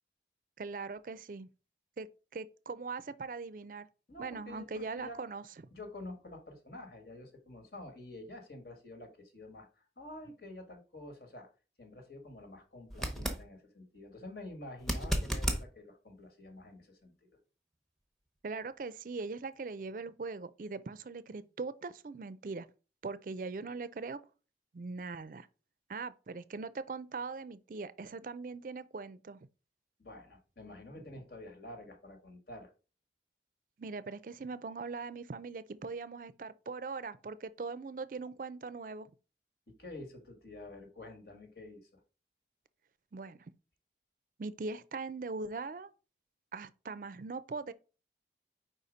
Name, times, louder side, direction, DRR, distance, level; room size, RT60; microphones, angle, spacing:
voice 1, 0.6-1.5 2.0-3.9 4.2-5.4 13.1-13.3 18.4-22.7 23.0-24.2 24.7-25.5 25.9-29.4 33.8-39.1 43.1-43.4 44.4-45.9 46.5-47.7, right 4 dB, 50° right, 0.4 m, -41 dB
voice 2, 4.1-5.2 5.7-11.5 11.8-17.3 30.0-32.7 39.7-42.0, left 1 dB, 60° left, 1.6 m, -49 dB
sound 1, 12.9-13.4 14.8-15.6 18.6-18.7, right 1 dB, ahead, 0.8 m, -33 dB
4.8 x 4.2 x 5.0 m
head